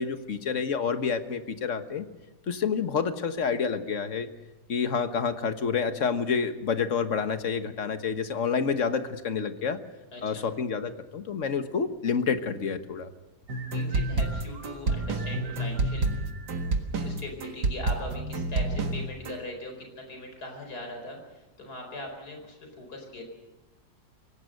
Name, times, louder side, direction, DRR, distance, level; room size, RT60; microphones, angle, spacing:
voice 1, 0.0-2.0 2.5-4.3 4.7-9.8 10.2-13.1, left 6 dB, 50° left, 9 dB, 1.6 m, -28 dB
voice 2, 10.1-10.4 13.7-16.1 17.0-23.2, left 1 dB, 70° left, 3 dB, 5.1 m, -40 dB
sound 1, 13.5-19.4, right 2 dB, 80° right, 2.3 m, -29 dB
26.0 x 17.5 x 6.6 m, 1.0 s
omnidirectional pair, 1.7 m